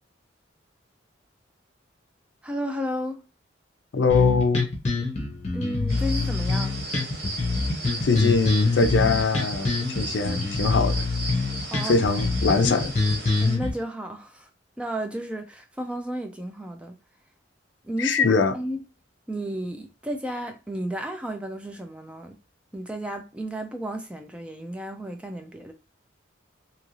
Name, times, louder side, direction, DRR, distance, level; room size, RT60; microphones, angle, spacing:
voice 1, 2.4-3.2 5.5-6.8 11.7-12.1 13.4-14.5 14.8-16.9 17.8-18.8 19.3-22.3 22.7-25.7, equal, 5° right, 0.3 m, -33 dB
voice 2, 3.9-4.7 8.0-9.7 10.0-11.1 11.8-12.9 18.0-18.5, left 4 dB, 75° left, 0.4 m, -22 dB
sound 1, 4.1-13.7, left 3 dB, 35° left, 0.7 m, -25 dB
sound 2, 5.9-13.6, right 2 dB, 55° right, 0.9 m, -35 dB
2.9 x 2.5 x 3.0 m
head